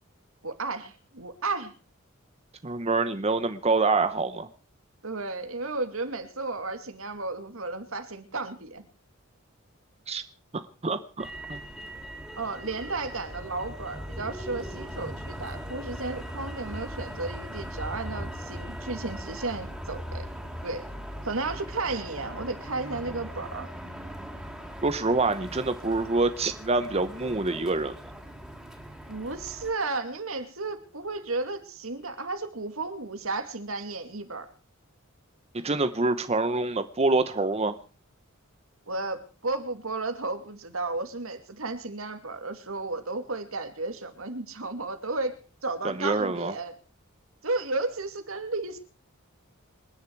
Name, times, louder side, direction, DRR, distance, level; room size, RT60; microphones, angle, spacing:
voice 1, 0.4-1.7 5.0-8.9 12.4-20.3 20.6-20.9 21.2-23.7 29.1-34.5 38.9-45.4 45.6-46.7 47.4-48.8, right 3 dB, 75° right, 8 dB, 2.4 m, -33 dB
voice 2, 2.6-4.5 10.1-10.2 10.5-11.6 24.8-27.9 35.5-37.8 45.8-46.5, right 3 dB, 30° right, 11 dB, 0.9 m, -26 dB
Motor vehicle (road), 11.2-29.7, equal, ahead, 3.4 m, -39 dB
27.0 x 10.5 x 4.7 m, 0.37 s
head